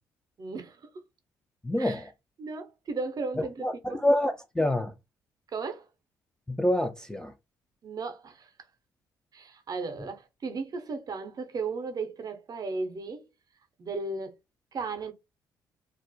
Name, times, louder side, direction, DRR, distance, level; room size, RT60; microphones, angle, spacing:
voice 1, 0.4-0.8 1.8-2.0 2.4-4.0 5.5-5.9 7.8-8.5 9.3-13.2 13.8-14.4 14.7-15.1, right 4 dB, 40° right, 0.6 m, -35 dB
voice 2, 1.6-2.1 3.6-4.9 6.5-7.3, left 1 dB, 10° left, 0.4 m, -27 dB
2.3 x 2.0 x 2.6 m
hypercardioid pair, 50°, 9 cm